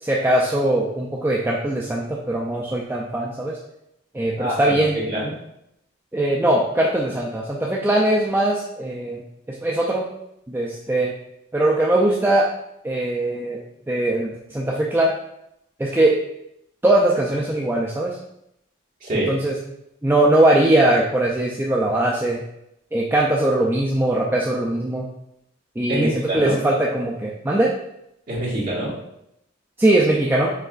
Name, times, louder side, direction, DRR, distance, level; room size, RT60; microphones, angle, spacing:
voice 1, 0.0-3.6 4.1-5.0 6.1-9.2 9.5-10.1 10.5-11.1 11.5-12.5 12.8-13.6 13.9-15.1 15.8-16.2 16.8-18.2 19.3-19.6 20.0-22.4 22.9-25.1 25.8-27.7 29.8-30.5, right 1 dB, 10° right, -3 dB, 0.3 m, -20 dB
voice 2, 4.4-5.3 19.0-19.4 25.9-26.6 28.3-28.9, right 1 dB, 45° right, -6 dB, 1.6 m, -25 dB
5.4 x 3.5 x 2.4 m, 0.80 s
head